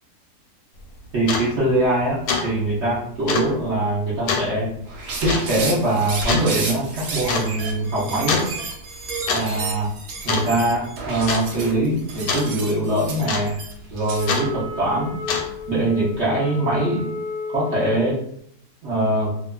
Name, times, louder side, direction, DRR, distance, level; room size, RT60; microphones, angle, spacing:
sound 1, 0.8-0.9 1.2-1.5 1.8-2.0 2.3-2.5 2.7-2.8 3.3-3.5 4.3-4.5 5.3-5.5 6.3-6.5 7.3-7.5 8.3-8.5 9.1-9.5 9.7-10.0 10.3-10.8 11.3-11.4 12.3-12.5 13.3-13.7 14.3-14.5 15.1-15.6, left 4 dB, 85° left, 1.2 m, -24 dB
voice 1, 1.1-4.7 5.2-8.4 9.3-9.9 10.2-13.6 13.9-15.1 15.7-17.0 17.5-18.2 18.8-19.3, right 1 dB, 50° right, -7 dB, 0.9 m, -22 dB
sound 2, 4.9-14.4, right 3 dB, 80° right, 1.2 m, -32 dB
Wind instrument woodwind instrument, 14.1-18.2, left 5 dB, 70° left, 0.9 m, -32 dB
2.9 x 2.4 x 2.3 m, 0.69 s
omnidirectional pair, 1.8 m